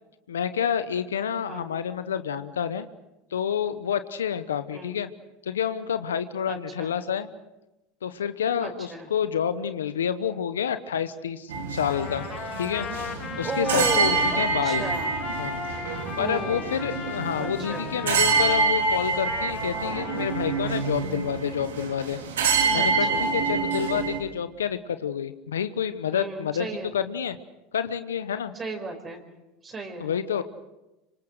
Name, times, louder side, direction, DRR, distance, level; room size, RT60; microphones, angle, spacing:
voice 1, 0.3-2.9 3.3-5.1 5.4-7.3 8.0-12.3 12.6-12.9 13.4-14.9 15.4-15.6 16.2-22.2 22.7-26.7 26.9-27.4 27.7-28.5 30.0-30.4, left 8 dB, 90° left, 12 dB, 0.9 m, -28 dB
voice 2, 6.5-6.9 8.6-9.1 13.4-15.1 16.2-16.7 17.4-17.9 22.7-23.4 26.1-26.9 28.5-29.2 29.6-30.1, right 3 dB, 30° right, 2 dB, 4.9 m, -34 dB
sound 1, 11.5-24.2, right 4 dB, 85° right, 3.2 m, -27 dB
Trumpet, 11.8-20.8, left 7 dB, 40° left, 3.3 m, -37 dB
26.0 x 25.5 x 6.5 m, 0.99 s
hypercardioid pair, 90°, 0 cm